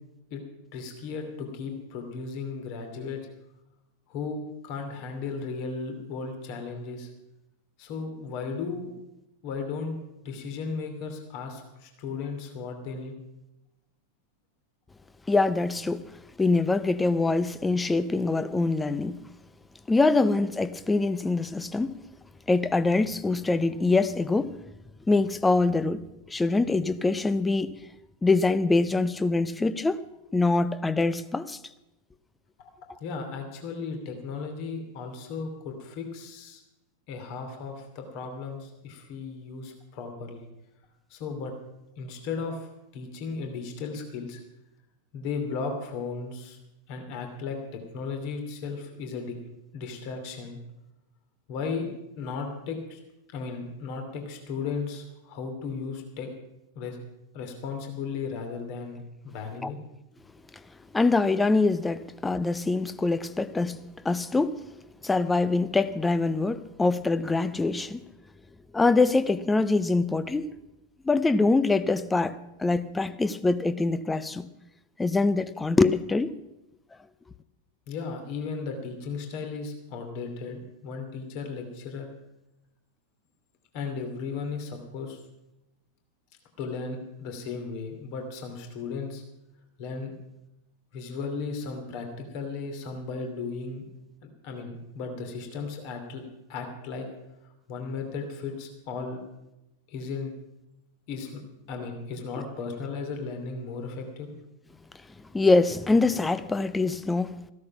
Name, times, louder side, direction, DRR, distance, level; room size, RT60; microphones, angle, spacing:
voice 1, 0.7-3.2 4.1-7.1 7.8-8.9 9.4-10.0 10.2-13.1 32.6-32.7 33.0-36.6 37.1-40.4 41.1-41.5 42.0-44.4 45.1-46.6 46.9-47.6 47.9-49.4 49.7-50.6 51.5-51.9 52.2-53.0 53.3-56.3 56.7-57.0 57.3-59.8 77.9-82.1 83.7-85.2 86.6-89.2 89.8-90.1 90.9-93.8 94.4-96.2 96.5-97.1 97.7-99.2 99.9-100.3 101.1-101.4 101.7-104.3, left 4 dB, 45° left, 2.7 m, -35 dB
voice 2, 15.3-16.0 16.4-19.2 19.9-22.0 22.5-24.5 25.1-27.8 28.2-30.0 30.3-31.6 59.6-59.7 60.9-63.8 64.0-64.6 65.0-68.0 68.7-70.5 71.0-74.5 75.0-76.4 105.3-107.4, left 3 dB, 10° left, 0.6 m, -24 dB
15.0 x 13.0 x 5.9 m
figure-of-eight pair, 90°, 0 cm